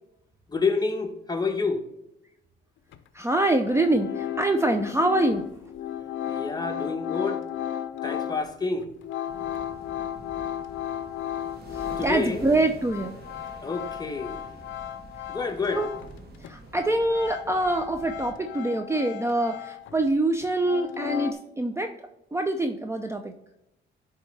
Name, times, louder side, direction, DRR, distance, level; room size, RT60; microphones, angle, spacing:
voice 1, 0.5-1.8 6.2-7.4 8.0-8.9 12.0-12.4 13.6-14.4 15.3-15.9, left 4 dB, 20° left, 4 dB, 1.1 m, -28 dB
sound 1, 2.9-3.0 3.4-12.3 12.6-16.2 16.4-20.1 20.4-21.3, left 11 dB, 75° left, 0.5 m, -35 dB
voice 2, 3.1-5.4 11.7-13.1 15.7-15.9 16.4-21.9 22.3-23.3, right 2 dB, 15° right, 6 dB, 0.5 m, -25 dB
sound 2, 9.2-18.3, right 2 dB, 50° right, 1.7 m, -46 dB
10.5 x 3.5 x 3.3 m, 0.86 s
cardioid pair, 90°, 20 cm